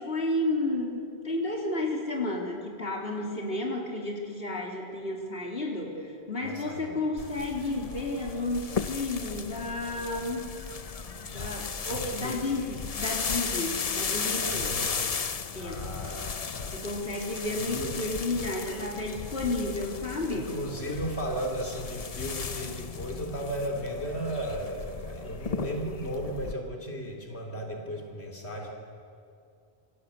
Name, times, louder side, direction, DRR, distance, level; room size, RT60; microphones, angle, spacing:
voice 1, 0.0-10.5 11.0-14.8 15.6-16.0 16.7-20.6, left 2 dB, 60° left, -1 dB, 3.8 m, -32 dB
voice 2, 6.4-7.0 11.9-12.6 14.4-15.2 15.6-16.8 17.6-18.0 18.9-19.0 20.3-28.7, right 1 dB, 80° left, 1 dB, 3.7 m, -35 dB
sound 1, 7.2-26.5, left 5 dB, 40° left, 0.8 m, -35 dB
28.5 x 24.5 x 8.4 m, 2.5 s
omnidirectional pair, 1.1 m